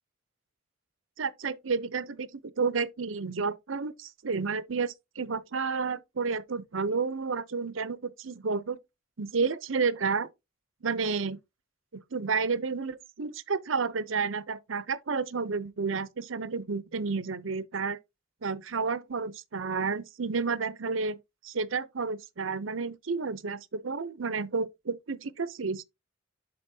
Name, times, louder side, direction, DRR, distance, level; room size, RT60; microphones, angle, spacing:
voice 1, 1.2-2.3 2.6-8.8 9.2-10.3 10.8-11.4 11.9-18.0 18.4-21.2 21.4-25.8, right 4 dB, 80° right, 0.7 m, -31 dB
11.5 x 4.2 x 2.7 m
head